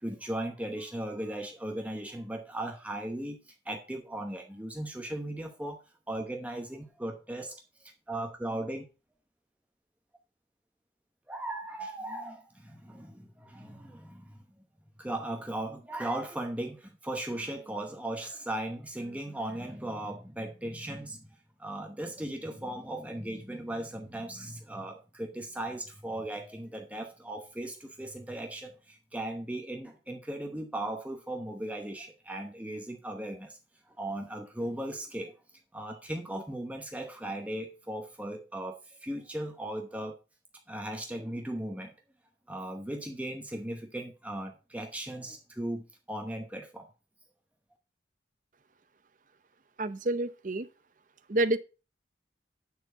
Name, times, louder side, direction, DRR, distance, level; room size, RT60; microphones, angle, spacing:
voice 1, 0.0-3.4 3.6-5.8 6.1-7.6 8.1-8.8 11.3-14.4 15.0-21.2 21.6-33.6 33.9-35.3 35.7-40.2 40.7-41.9 42.5-46.9, right 1 dB, 10° right, 0.9 m, -37 dB
voice 2, 49.8-50.7 51.3-51.6, right 2 dB, 45° right, 0.7 m, -28 dB
9.5 x 4.4 x 5.6 m
head